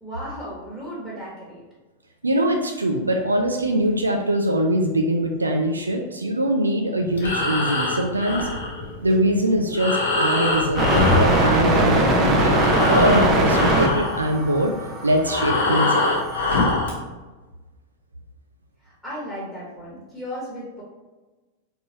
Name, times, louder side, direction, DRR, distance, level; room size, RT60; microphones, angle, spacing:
voice 1, 0.0-1.6 18.8-20.8, equal, ahead, -7 dB, 1.3 m, -35 dB
voice 2, 2.2-8.5 9.0-12.6 12.9-14.7 15.0-16.1, right 1 dB, 80° right, 3 dB, 0.3 m, -22 dB
sound 1, 5.3-13.7, equal, 60° right, 0.9 m, -43 dB
Breathing, 7.1-12.1 12.3-17.0, left 2 dB, 65° left, 0.7 m, -24 dB
sound 2, 10.8-16.6, right 1 dB, 30° right, 0.6 m, -22 dB
3.7 x 2.9 x 2.8 m, 1.2 s
figure-of-eight pair, 90°, 0 cm